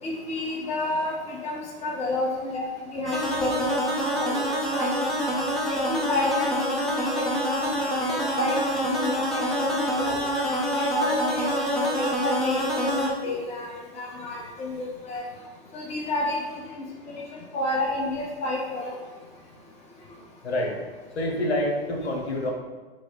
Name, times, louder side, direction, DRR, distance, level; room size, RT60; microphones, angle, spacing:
voice 1, 0.0-2.6 2.9-4.4 4.7-4.9 5.7-6.9 7.2-15.2 15.7-18.9, left 2 dB, 20° left, -3 dB, 1.0 m, -30 dB
sound 1, 3.1-13.1, equal, ahead, 0.6 m, -26 dB
voice 2, 21.1-22.5, left 1 dB, 85° left, 0 dB, 1.0 m, -27 dB
4.5 x 2.2 x 4.6 m, 1.3 s
hypercardioid pair, 115°, 32 cm